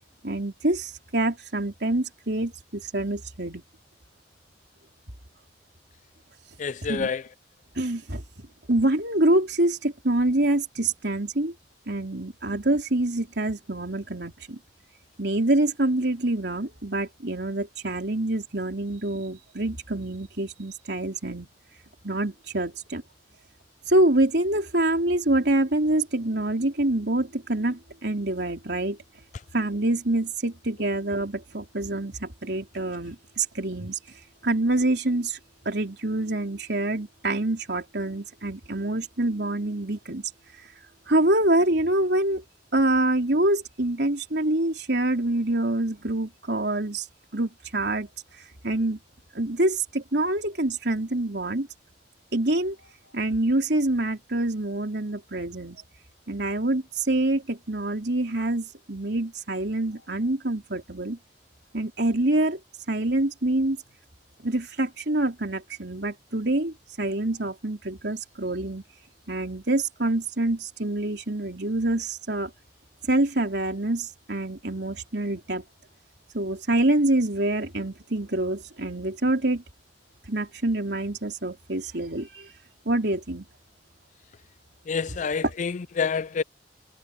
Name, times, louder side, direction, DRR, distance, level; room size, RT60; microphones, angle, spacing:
voice 1, 0.2-3.6 6.9-7.1 7.8-8.2 8.7-11.5 11.9-14.6 15.2-21.5 22.0-23.0 23.9-29.0 29.5-34.0 34.4-35.4 35.7-40.3 41.1-42.4 42.7-47.1 47.3-48.1 48.6-49.0 49.3-51.7 52.3-52.8 53.1-55.8 56.3-61.2 61.7-62.6 62.9-63.8 64.4-68.8 69.3-72.5 73.1-75.6 76.3-79.6 80.3-82.5 82.9-83.4, right 1 dB, 70° right, 4.0 m, -26 dB
voice 2, 6.6-7.2 84.9-86.4, left 5 dB, 45° left, 0.4 m, -28 dB
head